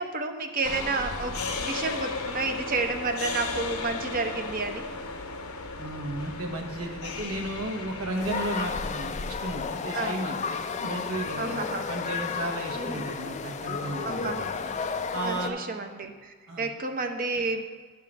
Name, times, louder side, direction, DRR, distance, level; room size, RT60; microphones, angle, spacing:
voice 1, 0.0-4.9 9.9-10.2 11.4-11.9 12.7-13.0 14.0-14.5 15.2-17.6, right 3 dB, 40° right, 5 dB, 0.7 m, -31 dB
sound 1, 0.6-8.6, left 3 dB, 75° left, 0.9 m, -35 dB
voice 2, 5.8-10.4 10.8-11.6 11.9-14.3 15.1-15.6 16.5-16.7, right 2 dB, 75° right, 3 dB, 1.1 m, -34 dB
sound 2, 8.2-15.5, left 5 dB, 30° left, 0.3 m, -32 dB
11.0 x 3.7 x 6.0 m, 1.5 s
head